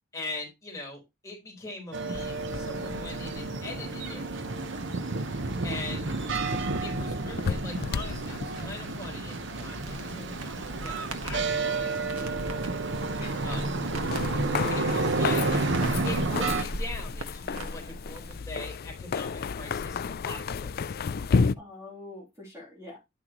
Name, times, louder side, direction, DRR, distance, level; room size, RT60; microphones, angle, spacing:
voice 1, 0.1-4.3 5.6-6.1 6.8-12.6 13.4-13.6 14.7-15.6 16.0-21.0, left 2 dB, 15° left, -1 dB, 4.2 m, -41 dB
sound 1, 1.9-16.6, right 3 dB, 55° right, 0.9 m, -30 dB
sound 2, 2.1-21.5, left 5 dB, 45° left, 0.3 m, -34 dB
Crackle, 9.8-18.4, right 1 dB, 90° right, 1.5 m, -40 dB
voice 2, 13.2-13.5 13.9-14.0 21.6-23.0, left 2 dB, 15° right, -3 dB, 3.2 m, -45 dB
10.5 x 6.1 x 3.1 m, 0.22 s
head